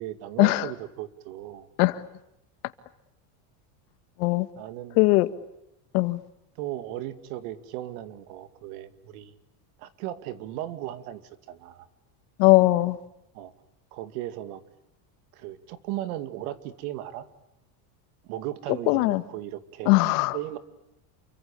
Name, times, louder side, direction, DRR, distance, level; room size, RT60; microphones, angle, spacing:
voice 1, 0.0-1.7 4.6-5.0 6.6-9.3 9.8-11.2 11.5-11.9 13.3-13.5 13.9-14.6 15.3-17.3 18.2-20.0 20.3-20.6, right 13 dB, 65° right, 12 dB, 2.6 m, -36 dB
voice 2, 5.0-5.3 5.9-6.2 12.4-13.0 18.9-19.2 19.9-20.4, left 21 dB, 70° left, 12 dB, 2.0 m, -20 dB
28.5 x 24.5 x 8.5 m, 0.83 s
cardioid pair, 170°, 47 cm